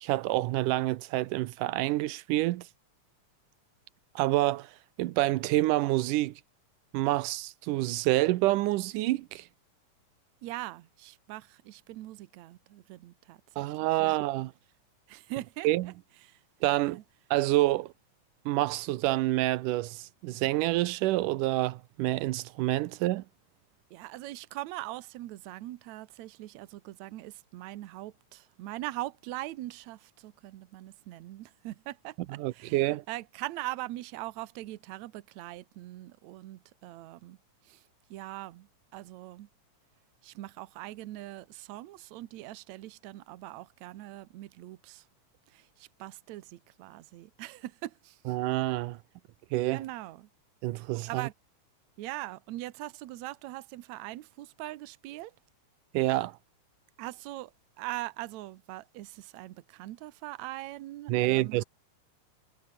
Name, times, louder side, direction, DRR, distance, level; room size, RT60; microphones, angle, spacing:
voice 1, 0.0-2.7 4.2-4.7 5.0-6.3 6.9-9.5 13.6-14.5 15.6-15.9 16.6-17.0 17.3-17.9 18.5-23.2 32.4-33.0 48.3-49.0 49.5-49.8 50.6-51.3 55.9-56.4 61.1-61.6, right 17 dB, 90° right, 2.3 m, -27 dB
voice 2, 10.4-14.2 15.1-15.9 16.2-16.4 23.9-37.4 37.6-37.8 38.1-39.5 40.2-45.1 45.5-48.4 49.7-50.3 51.0-51.3 52.0-55.3 57.0-57.5 57.8-61.6, right 17 dB, 70° right, 2.1 m, -41 dB
omnidirectional pair, 3.6 m